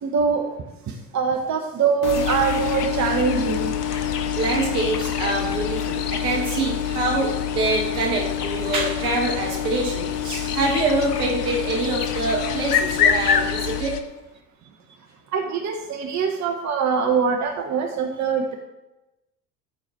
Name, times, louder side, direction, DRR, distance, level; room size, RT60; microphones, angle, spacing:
voice 1, 0.0-0.5 0.9-3.7 15.3-18.6, right 6 dB, 35° right, 3 dB, 1.2 m, -23 dB
sound 1, 2.0-13.8, left 11 dB, 40° left, 0.7 m, -29 dB
sound 2, 2.1-14.0, left 6 dB, 80° left, 0.9 m, -28 dB
voice 2, 4.4-14.0, right 2 dB, 70° right, -1 dB, 2.8 m, -25 dB
13.5 x 4.6 x 4.6 m, 0.97 s
figure-of-eight pair, 60°, 47 cm